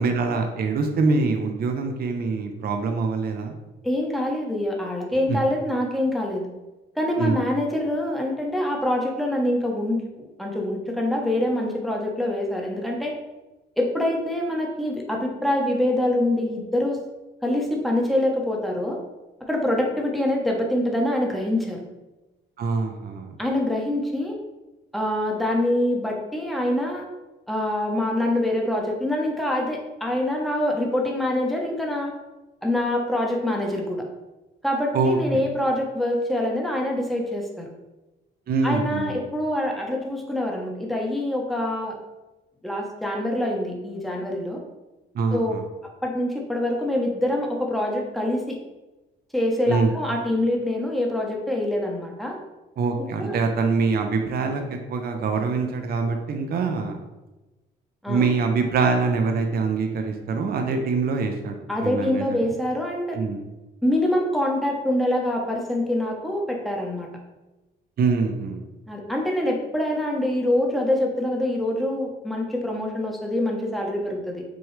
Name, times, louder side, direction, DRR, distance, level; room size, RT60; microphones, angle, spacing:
voice 1, 0.0-3.5 5.3-5.4 7.2-7.4 22.6-23.4 34.9-35.2 38.5-39.2 45.1-45.6 49.7-49.9 52.8-57.0 58.1-61.6 61.8-62.4 63.1-63.4 68.0-68.6, right 4 dB, 50° right, 4 dB, 0.6 m, -24 dB
voice 2, 3.8-6.5 7.0-10.1 10.4-13.1 13.8-17.0 17.4-19.0 19.5-21.8 23.4-24.4 24.9-27.1 27.5-32.1 32.6-34.0 34.6-37.7 38.6-41.9 42.6-44.6 45.3-45.5 46.0-48.6 49.3-52.4 53.0-53.4 58.0-58.3 61.7-63.2 63.8-67.1 68.9-74.4, left 1 dB, ahead, -1 dB, 0.9 m, -25 dB
6.1 x 2.3 x 3.2 m, 1.1 s
cardioid pair, 90°, 20 cm